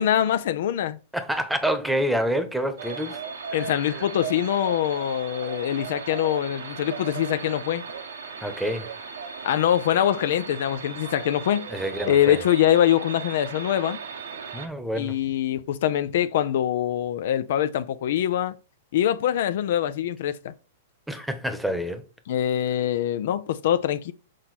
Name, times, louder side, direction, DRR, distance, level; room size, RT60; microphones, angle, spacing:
voice 1, 0.0-1.0 3.5-7.8 9.4-11.7 12.1-14.0 15.0-18.5 18.9-20.5 22.3-24.1, left 11 dB, 65° left, 0.5 m, -24 dB
voice 2, 1.1-3.2 3.6-3.7 8.4-8.9 11.7-12.4 14.5-15.2 21.1-22.0, equal, 5° right, 1.0 m, -27 dB
sound 1, 2.8-14.7, right 6 dB, 80° right, 1.3 m, -37 dB
6.3 x 4.2 x 4.2 m
hypercardioid pair, 115°, 0 cm